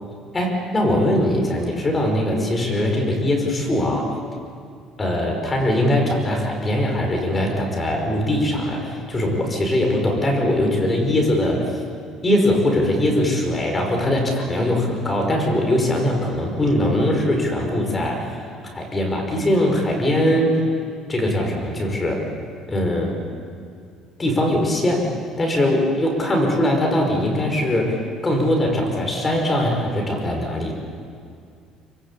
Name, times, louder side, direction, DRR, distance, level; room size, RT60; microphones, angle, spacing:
voice 1, 0.3-4.1 5.0-11.8 12.2-18.4 18.7-20.6 21.1-22.3 22.7-23.2 24.2-25.1 25.4-30.7, left 1 dB, 20° left, 1 dB, 5.2 m, -21 dB
25.5 x 24.5 x 8.5 m, 2.3 s
cardioid pair, 150°, 0 cm